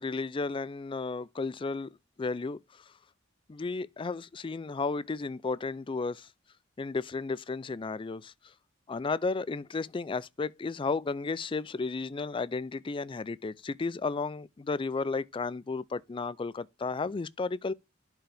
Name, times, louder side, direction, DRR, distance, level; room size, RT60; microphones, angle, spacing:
voice 1, 0.0-1.9 2.2-2.6 3.5-6.3 6.8-8.3 8.9-17.7, left 4 dB, 25° left, 0.4 m, -33 dB
11.5 x 4.7 x 3.4 m
head